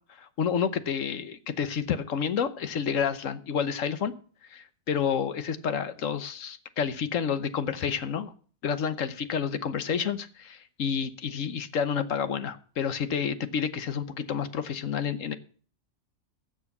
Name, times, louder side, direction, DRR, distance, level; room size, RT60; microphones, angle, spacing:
voice 1, 0.2-4.1 4.5-8.3 8.6-15.4, left 7 dB, 75° left, 12 dB, 1.3 m, -29 dB
15.5 x 6.3 x 6.0 m, 0.43 s
omnidirectional pair, 1.3 m